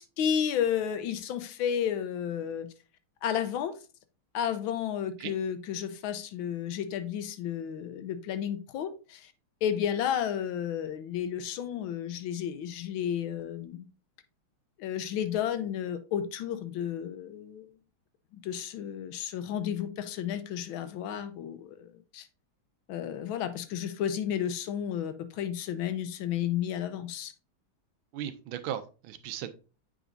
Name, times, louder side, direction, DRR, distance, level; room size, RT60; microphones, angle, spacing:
voice 1, 0.0-2.7 3.2-3.7 4.3-9.3 9.6-13.8 14.8-17.7 18.4-22.3 22.9-27.3, left 9 dB, 80° left, 11 dB, 1.4 m, -32 dB
voice 2, 28.1-29.5, right 10 dB, 80° right, 11 dB, 1.4 m, -37 dB
8.0 x 4.9 x 2.5 m, 0.34 s
omnidirectional pair, 2.3 m